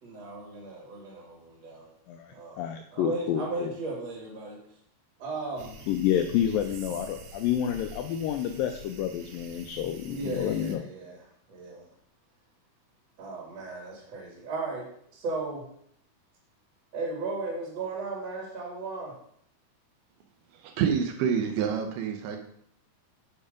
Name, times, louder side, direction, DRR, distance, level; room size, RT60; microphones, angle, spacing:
voice 1, 0.0-1.9 2.3-2.6 2.9-4.6 5.2-5.8 10.0-11.2 11.5-11.8 13.2-15.7 16.9-19.2, right 3 dB, 50° right, -3 dB, 2.5 m, -36 dB
voice 2, 2.1-3.7 5.9-10.8, left 10 dB, 85° left, 6 dB, 2.0 m, -29 dB
sound 1, 5.6-10.8, right 2 dB, 70° right, 2.3 m, -46 dB
voice 3, 20.6-22.4, right 7 dB, 85° right, 3 dB, 2.8 m, -27 dB
7.6 x 5.4 x 5.0 m, 0.70 s
omnidirectional pair, 4.5 m